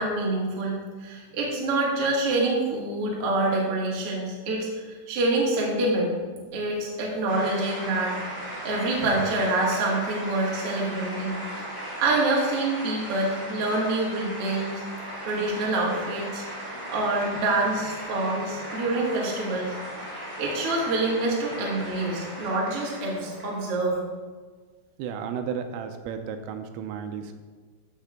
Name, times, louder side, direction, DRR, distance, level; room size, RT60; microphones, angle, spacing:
voice 1, 0.0-6.1 6.5-8.2 8.6-11.4 12.0-14.7 15.2-19.7 20.1-24.0, right 2 dB, 60° right, -3 dB, 1.5 m, -26 dB
sound 1, 7.3-23.8, equal, 10° right, 1.0 m, -37 dB
voice 2, 25.0-27.3, right 7 dB, 85° right, 7 dB, 3.1 m, -33 dB
13.0 x 6.5 x 3.6 m, 1.5 s
omnidirectional pair, 5.9 m